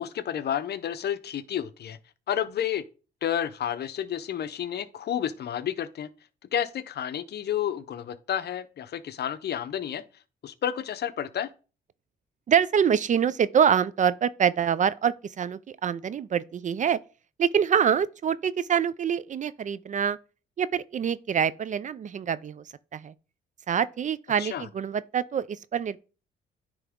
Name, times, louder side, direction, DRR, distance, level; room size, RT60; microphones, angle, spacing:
voice 1, 0.0-2.0 2.3-2.8 3.2-6.1 6.5-10.0 10.4-11.5 24.4-24.7, left 9 dB, 55° left, 0.7 m, -30 dB
voice 2, 12.5-17.0 17.4-20.2 20.6-22.6 22.9-23.1 23.7-26.0, right 8 dB, 40° right, 0.4 m, -25 dB
9.8 x 3.4 x 3.6 m
cardioid pair, 90°, 20 cm